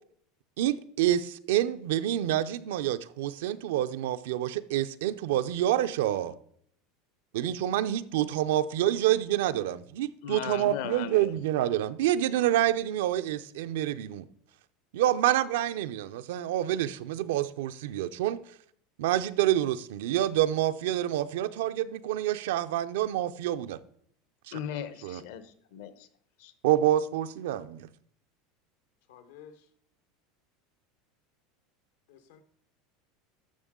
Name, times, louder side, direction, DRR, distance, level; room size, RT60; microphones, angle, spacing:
voice 1, 0.6-6.3 7.3-14.3 14.9-18.4 19.0-23.8 24.5-24.6 25.0-25.2 26.6-27.9, right 12 dB, 80° right, 0.5 m, -27 dB
voice 2, 10.2-11.3 24.5-26.1 26.4-26.5, left 9 dB, 70° left, 0.9 m, -38 dB
voice 3, 29.1-29.7 32.1-32.4, left 8 dB, 90° left, 1.2 m, -52 dB
12.5 x 6.5 x 3.7 m
supercardioid pair, 155°, 0 cm